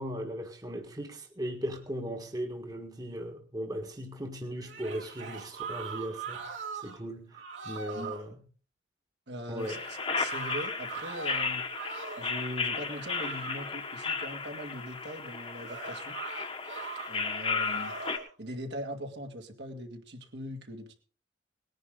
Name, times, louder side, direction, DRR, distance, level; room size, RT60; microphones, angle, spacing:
voice 1, 0.0-8.4 9.5-9.8, equal, 20° right, 3 dB, 1.7 m, -38 dB
sound 1, 4.6-7.0 7.3-8.2 9.6-12.3 12.8-13.7 15.6-17.1 17.5-18.3, right 5 dB, 80° right, 4.1 m, -41 dB
voice 2, 9.3-11.6 12.2-16.2 17.1-21.0, equal, 65° right, 3 dB, 2.3 m, -41 dB
sound 2, 9.6-18.2, left 5 dB, 30° left, 1.5 m, -34 dB
19.5 x 10.5 x 3.9 m, 0.39 s
head